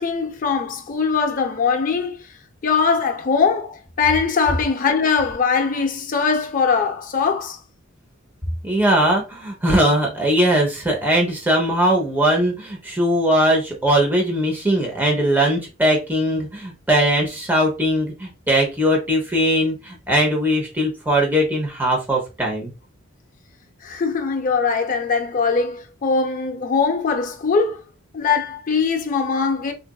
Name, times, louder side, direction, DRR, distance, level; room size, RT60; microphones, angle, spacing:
voice 1, 0.0-2.2 2.6-7.6 23.8-27.8 28.1-29.7, left 5 dB, 40° left, 0.5 m, -21 dB
voice 2, 8.6-22.7, equal, 10° right, 0.7 m, -20 dB
3.8 x 2.5 x 2.3 m
head